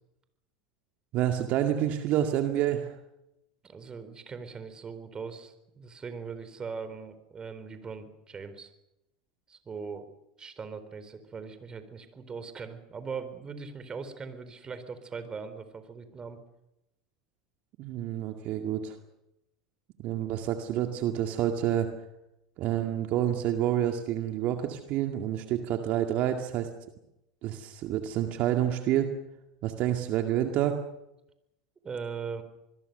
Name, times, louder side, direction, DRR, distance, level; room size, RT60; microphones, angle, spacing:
voice 1, 1.1-3.0 17.8-19.0 20.0-21.9 22.6-26.7 27.4-29.1 29.6-30.8, right 11 dB, 55° right, 4 dB, 2.1 m, -28 dB
voice 2, 3.6-8.7 9.5-16.4 31.8-32.4, right 5 dB, 25° right, 11 dB, 4.0 m, -40 dB
26.0 x 21.0 x 6.8 m, 0.88 s
hypercardioid pair, 90°, 3 cm